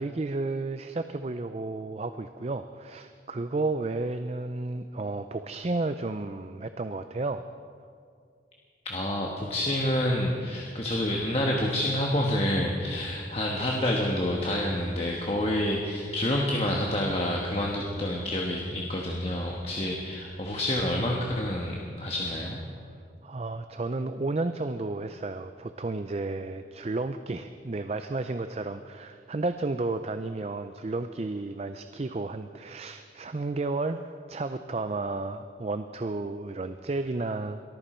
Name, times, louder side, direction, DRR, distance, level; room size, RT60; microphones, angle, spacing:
voice 1, 0.0-7.5 23.2-37.6, right 2 dB, 35° right, 9 dB, 0.4 m, -32 dB
voice 2, 8.8-22.6, left 1 dB, 35° left, -1 dB, 1.3 m, -28 dB
22.5 x 14.5 x 4.4 m, 2.3 s
head